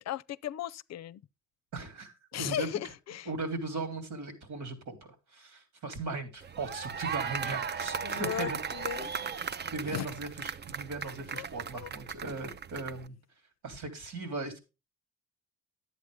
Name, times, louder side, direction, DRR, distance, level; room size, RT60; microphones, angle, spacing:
voice 1, 0.1-1.2 2.3-3.3 8.0-9.1 9.9-10.1 11.3-11.5 11.7-11.9, left 11 dB, 60° left, 0.5 m, -36 dB
voice 2, 1.7-2.7 3.3-8.6 9.7-13.2 13.6-14.6, right 3 dB, 75° right, 3.6 m, -38 dB
sound 1, 6.4-13.1, right 6 dB, 35° right, 0.6 m, -37 dB
11.0 x 8.2 x 3.6 m
cardioid pair, 90°, 30 cm